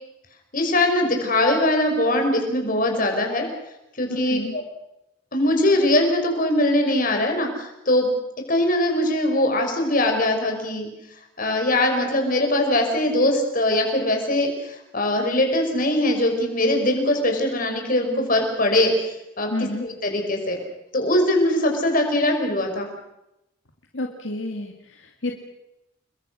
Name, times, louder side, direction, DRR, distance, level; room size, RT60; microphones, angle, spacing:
voice 1, 0.5-3.5 4.0-4.6 5.3-8.1 8.5-10.9 11.4-20.6 20.9-22.9, left 1 dB, 45° left, 3 dB, 6.0 m, -21 dB
voice 2, 4.1-4.5 19.5-19.9 23.9-25.3, left 2 dB, 70° left, 2 dB, 2.3 m, -30 dB
30.0 x 22.5 x 6.5 m, 0.88 s
head